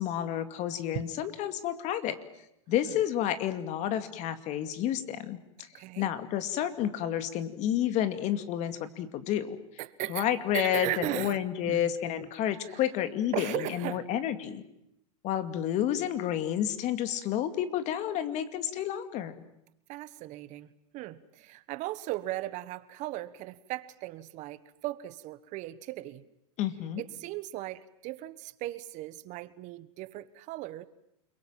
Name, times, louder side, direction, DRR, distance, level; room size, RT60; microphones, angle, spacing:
voice 1, 0.0-2.2 2.7-5.7 6.0-9.6 10.1-14.6 15.2-19.4 26.6-27.0, left 11 dB, 40° left, 10 dB, 2.4 m, -30 dB
voice 2, 5.7-6.1 9.8-10.2 10.5-11.4 11.7-11.9 12.2-12.3 12.7-12.8 13.3-14.0 19.9-20.7 20.9-26.2 27.0-30.8, right 16 dB, 45° right, 15 dB, 1.3 m, -37 dB
29.5 x 22.5 x 7.5 m, 0.81 s
hypercardioid pair, 120°, 18 cm